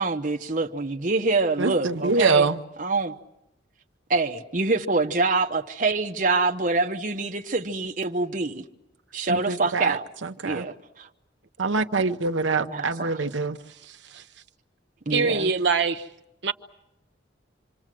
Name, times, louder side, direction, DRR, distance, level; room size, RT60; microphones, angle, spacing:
voice 1, 0.0-2.5 2.8-3.1 4.1-8.6 9.1-10.1 10.4-11.1 12.6-13.2 15.1-15.5, right 3 dB, 45° right, 1.0 m, -25 dB
voice 2, 1.6-2.6 9.3-10.0 10.4-10.6 11.6-13.6, right 4 dB, 85° right, 0.9 m, -24 dB
voice 3, 13.8-14.2 15.1-16.1 16.4-16.5, right 4 dB, 65° right, 1.2 m, -24 dB
27.5 x 25.0 x 7.6 m
head